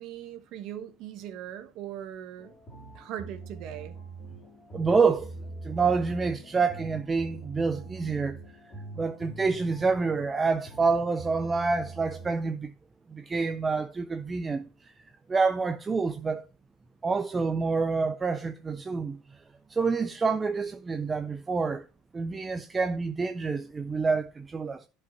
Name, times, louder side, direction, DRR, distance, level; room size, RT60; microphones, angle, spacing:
voice 1, 0.0-2.5 2.9-4.0, right 10 dB, 45° right, 1.1 m, -40 dB
sound 1, 2.4-12.3, right 3 dB, 20° left, 2.5 m, -43 dB
voice 2, 4.7-5.3 5.6-8.6 9.0-12.7 13.1-14.9 15.3-16.4 17.0-19.2 19.7-21.8 22.1-24.9, right 4 dB, 15° right, 0.4 m, -27 dB
11.0 x 5.4 x 4.4 m
cardioid pair, 170°, 0 cm